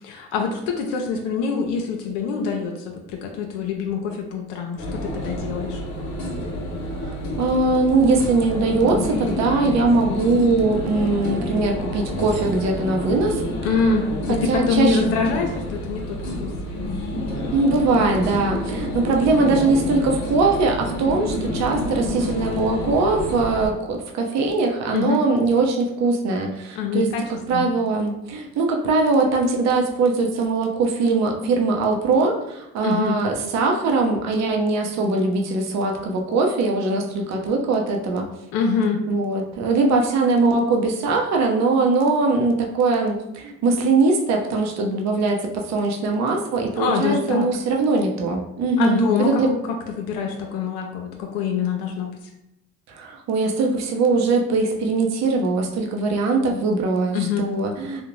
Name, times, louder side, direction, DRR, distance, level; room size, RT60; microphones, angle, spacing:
voice 1, 0.0-5.8 13.6-16.5 24.9-25.2 26.8-27.2 27.5-27.7 32.8-33.2 38.5-39.0 46.8-47.5 48.8-52.1 57.1-57.5, left 5 dB, 85° left, 2 dB, 0.5 m, -25 dB
sound 1, 4.8-23.7, left 1 dB, 60° left, 0.8 m, -29 dB
voice 2, 7.0-13.4 14.3-15.1 17.5-27.1 27.5-38.3 39.1-49.5 52.9-58.0, right 3 dB, 60° right, 1 dB, 0.6 m, -21 dB
2.6 x 2.1 x 3.0 m, 0.85 s
supercardioid pair, 70°, 31 cm